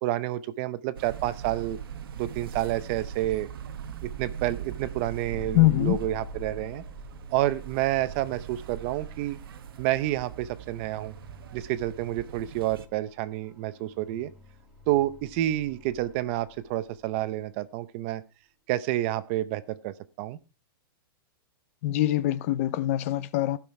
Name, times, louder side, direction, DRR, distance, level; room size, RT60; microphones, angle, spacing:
voice 1, 0.0-1.8 2.2-3.5 4.0-6.8 7.3-9.4 9.8-11.1 11.5-14.3 14.9-18.2 18.7-20.4, right 14 dB, 30° right, 0.6 m, -29 dB
sound 1, 1.0-12.9, right 9 dB, 70° right, 1.0 m, -41 dB
sound 2, 5.3-17.4, left 5 dB, 10° right, 2.0 m, -48 dB
voice 2, 5.5-6.0 21.8-23.6, left 15 dB, 35° left, 0.5 m, -23 dB
15.5 x 6.2 x 4.7 m
supercardioid pair, 170°, 12 cm